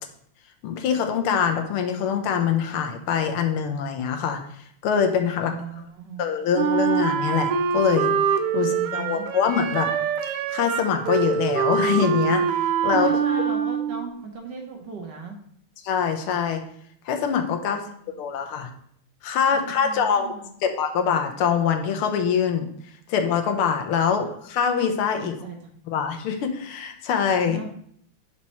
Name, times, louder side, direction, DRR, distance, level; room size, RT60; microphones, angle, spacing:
voice 1, 0.6-4.4 4.8-5.5 6.2-8.1 8.5-9.9 10.5-13.1 15.8-16.6 17.1-17.8 18.2-18.7 19.2-20.3 20.6-22.7 23.1-25.4 25.9-27.6, left 7 dB, 80° left, 5 dB, 1.6 m, -24 dB
voice 2, 5.4-6.2 8.5-9.3 12.9-15.4 17.6-18.2 19.5-20.5 24.2-24.3 25.1-25.6 27.5-27.7, right 5 dB, 65° right, 2 dB, 1.3 m, -38 dB
Wind instrument woodwind instrument, 6.5-14.1, right 7 dB, 90° right, 0.9 m, -24 dB
6.3 x 4.2 x 4.2 m, 0.65 s
omnidirectional pair, 2.4 m